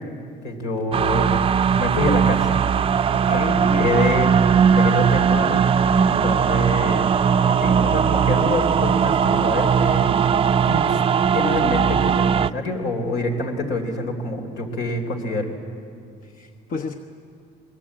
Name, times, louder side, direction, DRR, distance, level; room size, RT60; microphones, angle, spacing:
voice 1, 0.4-1.5 1.8-2.6 3.3-4.3 4.7-5.7 6.1-7.1 7.6-10.1 10.7-11.0 11.3-15.5, left 2 dB, 80° left, 4 dB, 3.7 m, -26 dB
sound 1, 0.9-12.5, right 7 dB, 35° right, 0.5 m, -19 dB
voice 2, 3.1-4.0 16.2-17.0, left 4 dB, 55° left, 6 dB, 1.1 m, -31 dB
23.5 x 21.5 x 8.7 m, 2.5 s
cardioid pair, 110°, 17 cm